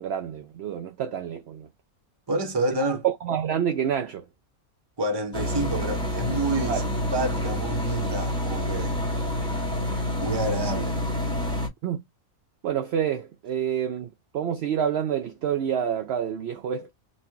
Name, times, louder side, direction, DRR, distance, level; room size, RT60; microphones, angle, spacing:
voice 1, 0.0-1.7 2.7-2.8 3.0-4.3 6.7-6.9 9.2-9.3 11.8-12.0 12.6-16.9, right 9 dB, 70° right, 0.6 m, -28 dB
voice 2, 2.3-3.0 5.0-6.8 7.1-9.0 10.2-11.0, right 2 dB, 25° right, 0.6 m, -28 dB
sound 1, 5.3-11.7, left 1 dB, 5° left, 1.0 m, -28 dB
4.1 x 2.4 x 2.7 m
omnidirectional pair, 1.5 m